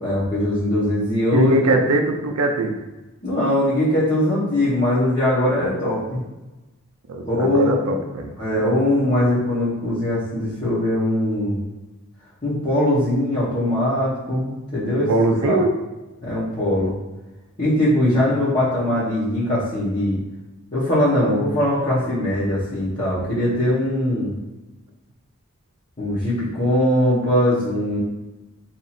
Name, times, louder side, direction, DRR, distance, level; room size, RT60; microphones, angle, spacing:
voice 1, 0.0-1.6 3.2-6.2 7.2-8.0 8.4-11.6 12.4-15.1 15.4-15.6 16.2-16.9 17.6-20.2 20.7-24.3 26.0-28.0, left 1 dB, 35° left, -12 dB, 1.0 m, -21 dB
voice 2, 1.3-2.8 7.1-8.3 15.1-15.7, right 2 dB, 85° right, 3 dB, 0.4 m, -21 dB
2.9 x 2.7 x 4.1 m, 1.1 s
head